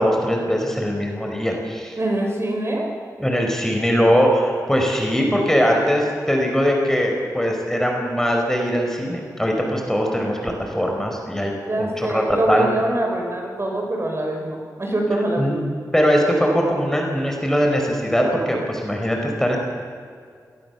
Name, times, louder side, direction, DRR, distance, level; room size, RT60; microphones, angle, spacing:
voice 1, 0.0-2.0 3.2-12.7 15.4-15.6 15.9-19.6, equal, 5° left, 1 dB, 5.0 m, -21 dB
voice 2, 2.0-2.9 11.7-15.6, right 1 dB, 40° right, 1 dB, 6.0 m, -24 dB
26.5 x 19.5 x 7.2 m, 2.1 s
wide cardioid pair, 65°, 7 cm